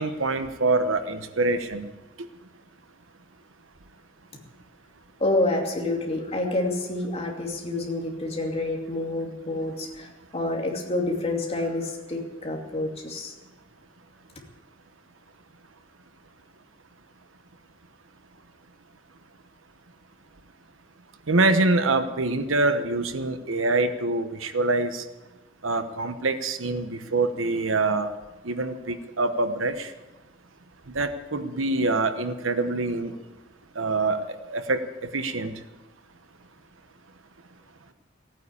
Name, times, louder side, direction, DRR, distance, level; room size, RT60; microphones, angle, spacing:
voice 1, 0.0-1.9 21.3-25.0 25.6-28.1 28.4-29.9 30.9-33.1 33.8-34.8 35.1-35.5, right 3 dB, 85° right, 9 dB, 1.1 m, -25 dB
voice 2, 5.2-10.1 10.3-13.3, left 2 dB, 30° left, 1 dB, 2.6 m, -28 dB
16.5 x 9.1 x 8.5 m, 1.1 s
head